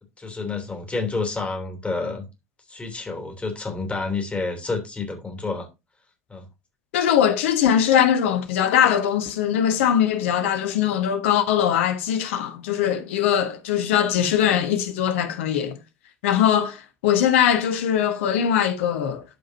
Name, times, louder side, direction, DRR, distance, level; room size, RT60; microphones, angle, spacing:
voice 1, 0.2-2.2 2.7-5.7 6.3-6.4, left 3 dB, 15° left, 3.1 m, -29 dB
voice 2, 6.9-15.8 16.2-19.2, left 9 dB, 65° left, 1.3 m, -21 dB
13.0 x 5.1 x 2.8 m
figure-of-eight pair, 65°, 7 cm